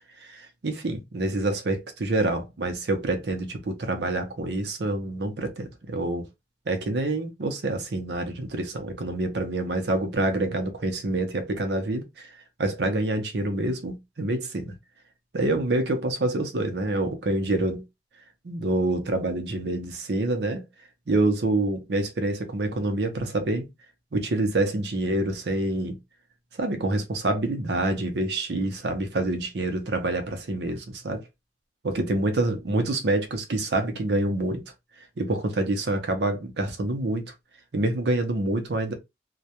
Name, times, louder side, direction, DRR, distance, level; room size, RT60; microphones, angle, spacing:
voice 1, 0.2-6.3 6.7-12.3 12.6-14.7 15.3-17.8 18.4-20.6 21.1-23.7 24.1-26.0 26.5-31.2 31.8-34.6 35.2-37.3 37.7-38.9, right 2 dB, 75° right, 0.6 m, -27 dB
2.3 x 2.1 x 2.7 m
head